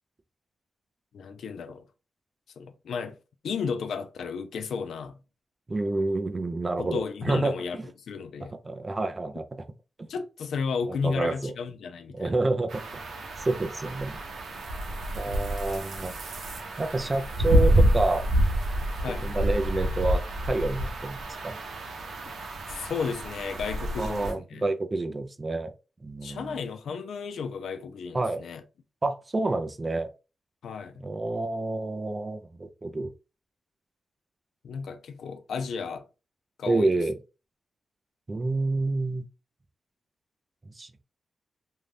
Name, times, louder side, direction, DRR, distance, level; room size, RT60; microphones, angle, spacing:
voice 1, 1.1-1.9 2.6-3.2 3.4-5.2 6.8-8.6 10.1-12.4 15.3-15.5 19.0-19.4 22.3-22.4 22.7-24.7 26.2-28.6 30.6-31.1 34.6-36.1 36.6-36.9, left 5 dB, 90° left, 0.4 m, -33 dB
voice 2, 5.7-7.8 8.7-9.5 10.0-10.1 10.9-11.5 12.1-12.8 13.4-14.2 15.1-16.1 16.8-18.3 19.2-21.6 24.0-25.7 26.0-26.6 28.1-28.4 29.0-30.1 31.0-33.1 36.7-37.2 38.3-39.3 40.8-40.9, right 2 dB, 20° right, 0.3 m, -28 dB
sound 1, 12.7-24.3, right 1 dB, 90° right, 0.6 m, -28 dB
2.6 x 2.2 x 3.2 m
wide cardioid pair, 175°, 0 cm